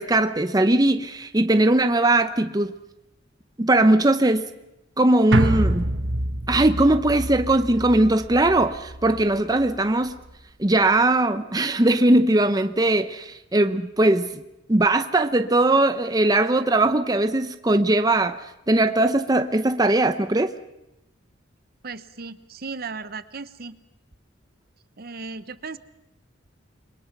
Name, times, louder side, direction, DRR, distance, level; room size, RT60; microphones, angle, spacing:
voice 1, 0.0-2.7 3.6-4.5 5.0-5.9 6.5-10.1 10.6-14.4 14.7-18.4 18.7-20.5, right 2 dB, 20° right, 9 dB, 0.8 m, -20 dB
sound 1, 5.3-9.8 10.1-10.2, right 1 dB, 65° right, 1.5 m, -26 dB
voice 2, 21.8-23.8 25.0-25.8, right 4 dB, 50° right, 13 dB, 0.9 m, -36 dB
28.5 x 22.5 x 6.0 m, 0.88 s
head